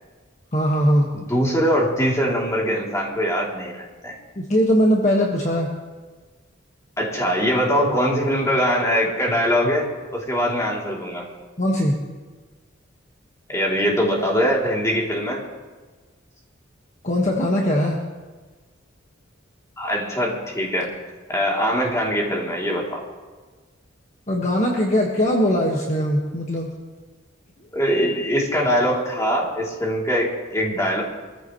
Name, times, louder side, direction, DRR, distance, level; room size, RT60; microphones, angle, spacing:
voice 1, 0.5-1.1 4.4-5.7 11.6-12.0 17.0-18.0 24.3-26.7, equal, 35° left, -1 dB, 1.5 m, -20 dB
voice 2, 1.1-4.2 7.0-11.3 13.5-15.4 19.8-20.9 21.3-23.0 27.7-31.0, equal, 15° left, -3 dB, 2.9 m, -22 dB
23.5 x 14.5 x 3.1 m, 1.4 s
head